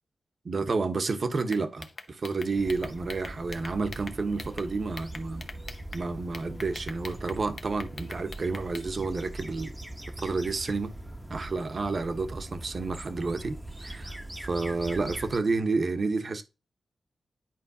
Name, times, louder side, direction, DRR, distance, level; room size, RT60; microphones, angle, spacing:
voice 1, 0.4-5.5 5.9-9.7 10.2-10.9 11.3-16.4, right 3 dB, 50° right, 1.0 m, -30 dB
sound 1, 1.5-4.7 5.0-6.0 6.3-8.9, left 4 dB, 55° left, 0.7 m, -43 dB
sound 2, 2.5-15.4, right 1 dB, 10° right, 0.9 m, -41 dB
10.5 x 4.4 x 2.8 m
cardioid pair, 75°, 0 cm